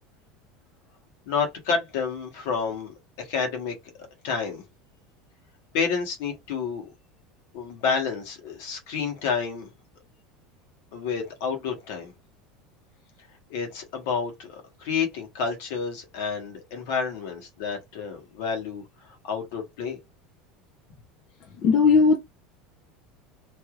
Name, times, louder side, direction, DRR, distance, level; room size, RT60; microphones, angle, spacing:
voice 1, 1.3-3.8 4.2-4.6 5.7-6.9 7.5-9.7 10.9-12.1 13.5-20.0, left 5 dB, 75° left, 1.2 m, -29 dB
voice 2, 21.6-22.2, left 5 dB, 45° left, 0.6 m, -17 dB
3.3 x 2.6 x 2.4 m
supercardioid pair, 110°, 0 cm